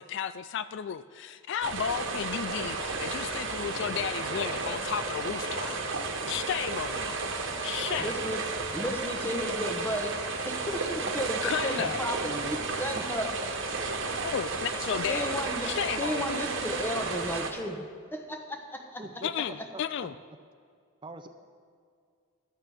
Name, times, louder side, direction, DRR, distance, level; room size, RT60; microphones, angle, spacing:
voice 1, 0.0-5.8 6.3-7.2 7.6-8.2 11.4-12.0 14.2-16.4 19.2-20.2, left 8 dB, 60° left, 14 dB, 0.3 m, -33 dB
sound 1, 1.6-17.5, right 3 dB, 65° right, 1.3 m, -33 dB
voice 2, 8.0-8.4 8.7-13.3 15.0-15.7 16.0-17.8 18.1-19.0, equal, 10° left, 3 dB, 1.1 m, -34 dB
voice 3, 12.2-12.6 12.9-13.1 19.0-19.3 19.7-19.8 21.0-21.3, right 2 dB, 25° right, 7 dB, 0.5 m, -41 dB
15.5 x 12.0 x 3.5 m, 2.2 s
head